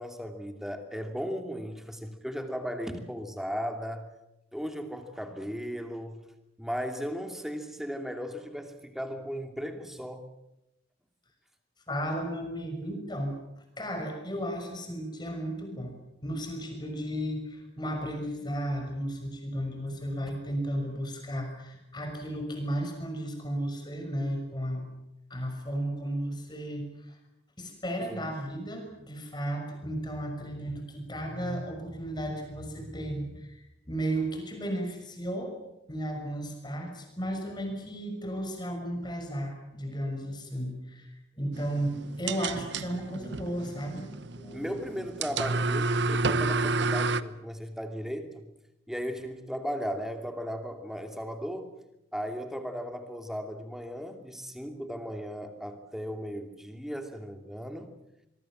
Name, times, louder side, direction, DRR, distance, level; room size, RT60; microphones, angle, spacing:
voice 1, 0.0-4.1 4.5-6.3 6.6-10.3 28.0-28.2 44.5-48.5 48.9-51.7 52.1-57.9, equal, ahead, 6 dB, 2.6 m, -36 dB
voice 2, 11.9-13.4 13.8-24.8 25.3-27.2 27.6-35.5 35.9-44.9, equal, 20° left, 3 dB, 6.2 m, -34 dB
sound 1, 41.5-47.2, right 3 dB, 65° right, 1.0 m, -30 dB
25.0 x 23.0 x 7.5 m, 0.88 s
head